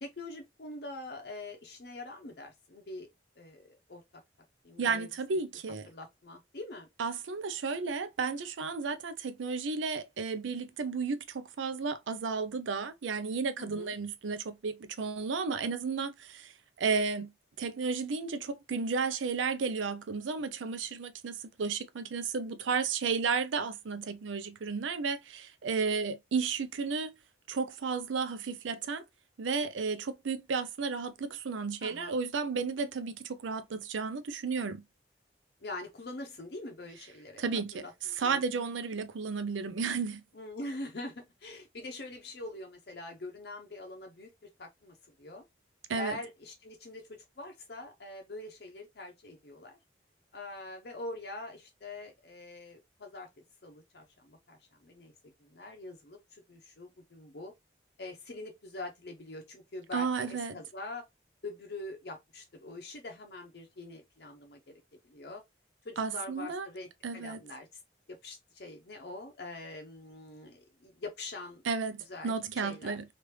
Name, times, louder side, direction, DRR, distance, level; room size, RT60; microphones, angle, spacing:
voice 1, 0.0-3.1 3.4-4.0 4.6-5.1 5.9-6.9 13.6-13.9 31.8-32.2 35.6-37.4 37.8-38.4 40.3-44.3 44.6-45.4 46.0-49.8 50.3-53.3 53.6-55.1 55.4-57.5 58.0-61.0 61.4-64.7 65.0-65.4 65.8-67.8 68.1-71.6 72.1-73.0, left 2 dB, 60° left, 0.6 m, -44 dB
voice 2, 4.8-5.9 7.0-16.5 16.8-17.3 17.6-27.1 27.5-29.0 29.4-34.8 37.4-40.2 45.9-46.2 59.9-60.6 66.0-66.7 67.0-67.4 71.7-73.0, right 5 dB, 90° right, 0.5 m, -33 dB
3.3 x 2.4 x 3.0 m
head